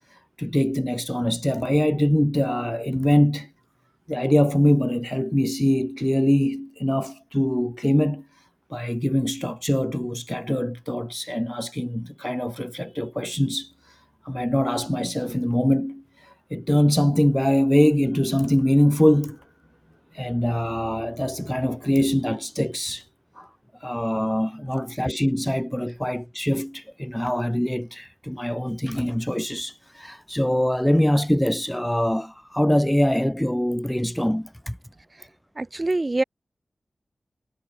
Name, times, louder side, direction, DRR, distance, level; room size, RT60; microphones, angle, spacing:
voice 1, 0.1-3.5 4.1-8.4 8.7-19.4 20.1-23.1 23.4-23.5 23.8-34.8, equal, 5° left, 0.6 m, -23 dB
voice 2, 35.6-36.2, right 2 dB, 25° right, 4.0 m, -25 dB
wide cardioid pair, 115°, 0 cm